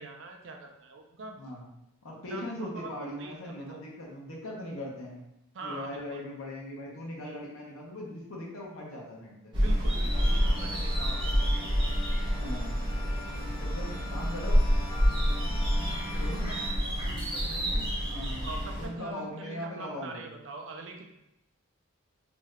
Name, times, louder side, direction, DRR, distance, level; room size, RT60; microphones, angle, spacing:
voice 1, 0.0-1.4 2.3-3.8 5.5-6.2 7.2-7.4 9.5-11.3 16.1-18.0 18.4-21.1, right 2 dB, 60° right, 3 dB, 0.4 m, -43 dB
voice 2, 1.3-1.7 2.0-5.2 5.6-9.5 12.3-12.8 13.6-14.6 16.2-16.5 18.0-18.5 18.8-20.3, left 1 dB, 80° left, -3 dB, 0.8 m, -40 dB
sound 1, 9.5-18.9, equal, 25° right, 0.7 m, -28 dB
sound 2, 10.1-16.7, left 2 dB, 25° left, 0.4 m, -43 dB
2.6 x 2.3 x 3.2 m, 0.88 s
head